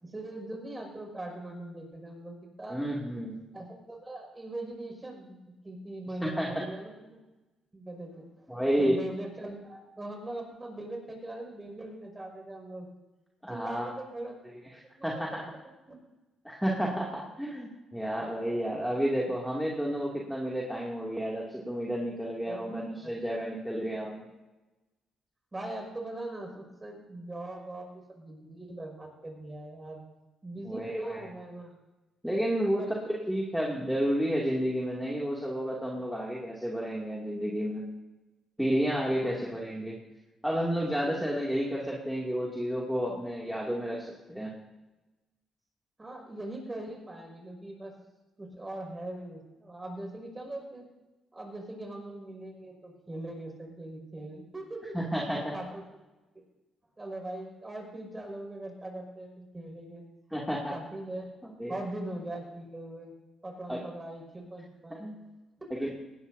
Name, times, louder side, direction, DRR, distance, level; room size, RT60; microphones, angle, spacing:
voice 1, 0.0-2.8 3.5-5.4 5.6-7.2 7.7-8.5 8.8-12.9 13.5-14.4 14.9-15.4 15.6-16.0 22.5-23.1 25.5-30.0 30.4-31.8 32.8-33.1 39.2-39.5 41.0-41.4 46.0-47.9 48.4-50.9 51.3-55.0 55.3-56.0 57.0-60.0 60.7-61.3 61.7-63.1 63.4-65.1 65.6-65.8, right 1 dB, 20° right, 1 dB, 5.8 m, -41 dB
voice 2, 2.7-3.4 6.2-6.6 8.5-9.0 13.4-14.0 15.0-15.5 16.4-24.3 30.7-31.3 32.2-37.8 38.6-40.0 40.4-44.5 54.9-55.5 60.3-60.7 61.6-61.7 63.7-63.8 65.0-65.1 65.8-65.9, equal, ahead, -3 dB, 2.6 m, -31 dB
19.5 x 17.0 x 2.8 m, 1.1 s
cardioid pair, 90°, 0 cm